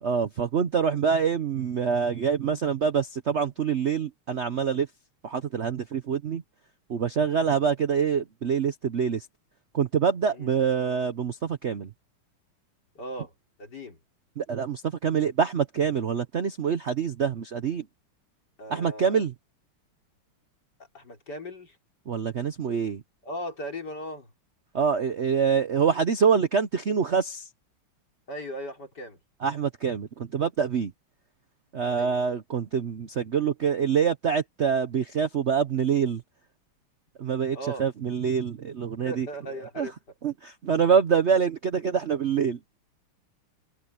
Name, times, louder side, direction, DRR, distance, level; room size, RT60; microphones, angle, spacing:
voice 1, 0.0-4.9 5.2-6.4 6.9-9.3 9.7-11.9 14.4-17.9 18.7-19.3 22.1-23.0 24.7-27.5 29.4-30.9 31.7-36.2 37.2-39.3 39.8-39.9 40.2-42.8, right 6 dB, 75° right, 0.6 m, -25 dB
voice 2, 12.9-13.3 13.6-14.0 18.6-19.2 20.9-21.8 23.2-24.3 28.3-29.2 31.9-32.2 37.5-37.9 39.0-39.9, equal, 50° left, 4.6 m, -37 dB
omnidirectional pair, 2.4 m